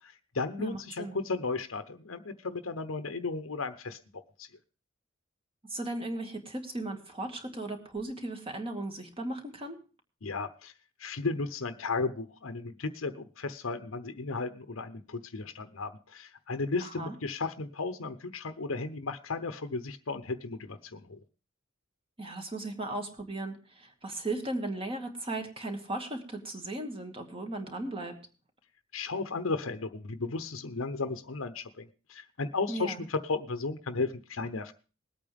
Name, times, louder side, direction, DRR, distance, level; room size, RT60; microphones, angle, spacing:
voice 1, 0.0-4.0 4.4-4.5 10.2-10.7 11.0-21.2 28.9-34.7, left 3 dB, 85° left, 10 dB, 0.9 m, -34 dB
voice 2, 0.6-1.2 5.7-9.8 16.8-17.2 22.2-28.2 32.7-33.0, right 2 dB, 25° right, 4 dB, 2.0 m, -36 dB
20.5 x 8.7 x 3.5 m, 0.34 s
head